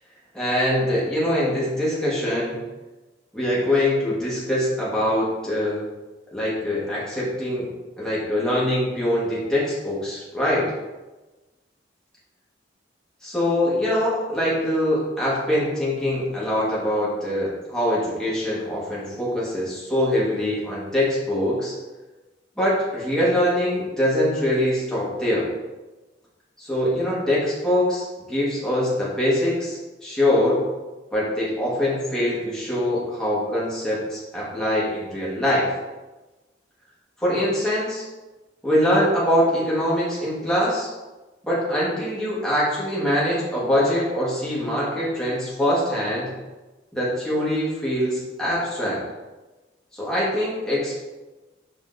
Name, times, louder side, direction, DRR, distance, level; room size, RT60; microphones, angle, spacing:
voice 1, 0.3-2.6 3.3-5.8 6.3-7.7 8.0-10.7 13.2-21.7 22.6-25.5 26.6-30.6 31.1-35.7 37.2-38.0 38.6-40.9 41.4-46.3 46.9-49.0 49.9-51.0, left 1 dB, 5° left, -8 dB, 1.2 m, -23 dB
5.8 x 3.5 x 2.5 m, 1.1 s
head